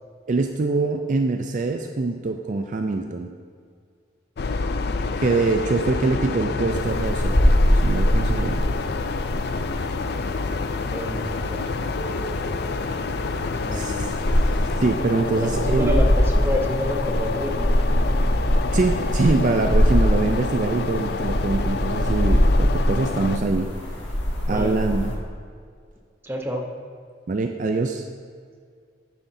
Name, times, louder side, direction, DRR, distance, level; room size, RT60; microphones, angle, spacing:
voice 1, 0.3-3.3 5.2-8.6 13.7-14.1 14.8-16.0 18.7-23.7 24.5-25.1 27.3-28.0, right 3 dB, 45° right, 5 dB, 0.4 m, -24 dB
sound 1, 4.4-23.4, left 4 dB, 60° left, 0.4 m, -28 dB
sound 2, 6.7-25.1, equal, 85° left, 1.3 m, -23 dB
voice 2, 10.9-11.7 13.6-14.1 15.3-17.8 24.5-24.8 26.2-26.7, left 1 dB, 15° right, 2 dB, 0.8 m, -29 dB
10.0 x 9.4 x 2.7 m, 2.1 s
head